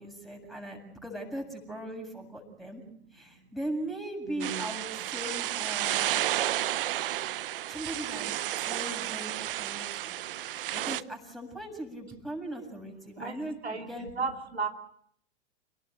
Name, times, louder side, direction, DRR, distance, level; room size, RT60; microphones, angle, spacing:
voice 1, 0.0-2.8 3.1-6.2 7.7-10.2 10.5-14.1, right 1 dB, ahead, 4 dB, 7.6 m, -39 dB
voice 2, 4.2-4.9 13.2-14.7, right 4 dB, 90° right, 4 dB, 3.0 m, -35 dB
sound 1, 4.4-11.0, right 13 dB, 60° right, 1.0 m, -32 dB
29.5 x 18.5 x 8.1 m, 0.69 s
figure-of-eight pair, 100°, 31 cm